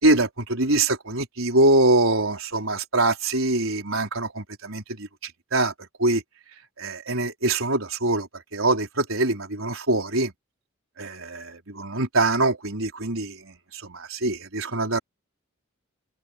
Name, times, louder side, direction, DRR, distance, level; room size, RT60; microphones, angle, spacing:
voice 1, 0.0-5.7 6.0-6.2 6.8-10.3 11.0-15.0, right 2 dB, 80° right, 4.2 m, -24 dB
head